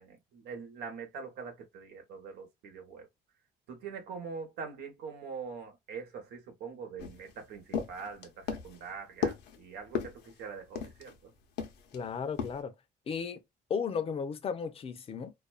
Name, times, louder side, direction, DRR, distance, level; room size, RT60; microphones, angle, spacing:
voice 1, 0.0-3.1 3.7-11.3, right 5 dB, 85° right, 1.0 m, -43 dB
sound 1, 7.0-11.2 11.6-12.0 12.4-12.6, left 6 dB, 80° left, 0.7 m, -36 dB
voice 2, 11.9-12.7 13.1-13.4 13.7-15.3, left 6 dB, 35° left, 0.5 m, -34 dB
2.4 x 2.2 x 2.3 m
cardioid pair, 110°, 17 cm